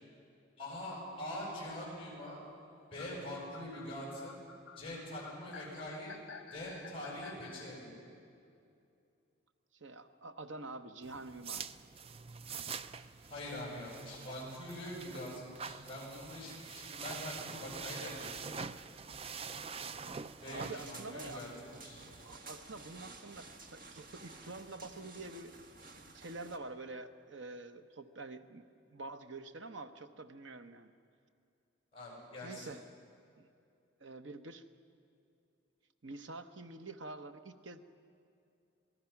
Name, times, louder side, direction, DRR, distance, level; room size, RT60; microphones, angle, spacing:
voice 1, 0.6-2.4 2.9-4.4 4.8-6.1 6.5-7.9 13.3-18.6 19.6-20.0 20.4-22.1 31.9-32.7, left 1 dB, 30° left, -3 dB, 7.7 m, -44 dB
sound 1, 3.0-7.7, left 5 dB, 70° left, 1.3 m, -52 dB
voice 2, 9.7-11.6 20.5-21.4 22.2-25.5 26.0-28.7 28.9-30.9 32.4-32.8 33.4-33.5 34.0-34.6 36.0-37.8, right 2 dB, 70° right, 8 dB, 1.0 m, -47 dB
sound 2, 11.0-22.4, right 5 dB, 30° right, 0.4 m, -45 dB
sound 3, 20.4-26.6, right 3 dB, 45° right, 1.5 m, -53 dB
27.5 x 19.0 x 5.9 m, 2.5 s
head